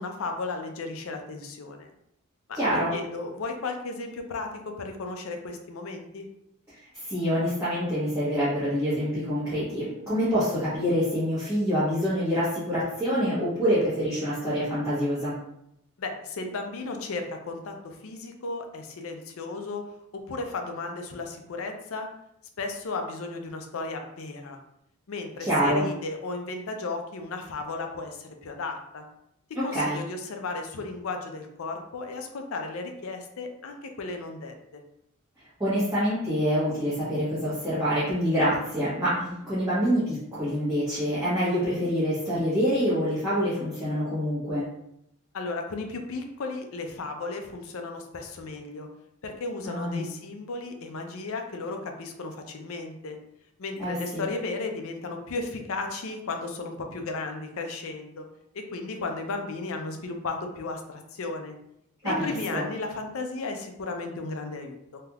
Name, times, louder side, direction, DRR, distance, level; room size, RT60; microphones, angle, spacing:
voice 1, 0.0-1.9 2.5-2.6 2.9-6.3 16.0-19.8 20.3-22.1 22.6-24.6 25.1-29.0 29.6-34.8 45.3-48.9 49.2-53.2 53.6-58.3 58.5-61.5 62.0-65.0, left 3 dB, 70° left, 4 dB, 0.5 m, -35 dB
voice 2, 2.5-2.9 6.9-15.3 25.4-25.8 29.5-30.0 35.6-44.7 49.6-50.1 53.8-54.2 62.0-62.6, equal, 10° right, -13 dB, 1.1 m, -26 dB
3.3 x 2.8 x 2.3 m, 0.78 s
head